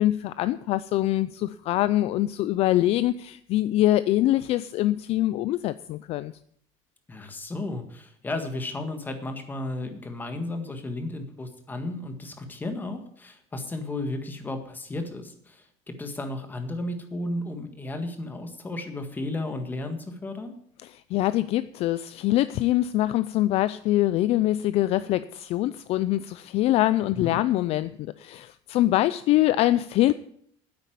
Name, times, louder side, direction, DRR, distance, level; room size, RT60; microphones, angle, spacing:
voice 1, 0.0-6.3 20.8-30.1, left 15 dB, 45° left, 15 dB, 0.4 m, -24 dB
voice 2, 7.1-20.5 27.2-27.4, left 2 dB, 15° left, 6 dB, 1.7 m, -34 dB
9.6 x 8.3 x 9.3 m, 0.67 s
cardioid pair, 155°, 14 cm